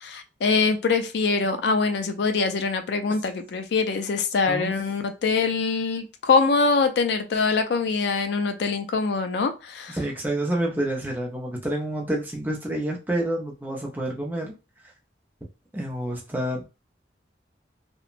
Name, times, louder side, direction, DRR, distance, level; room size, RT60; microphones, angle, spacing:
voice 1, 0.0-10.0, left 4 dB, 65° left, 7 dB, 0.3 m, -24 dB
voice 2, 9.9-14.5 15.7-16.6, right 1 dB, 10° right, -1 dB, 0.5 m, -28 dB
2.9 x 2.1 x 2.4 m, 0.30 s
head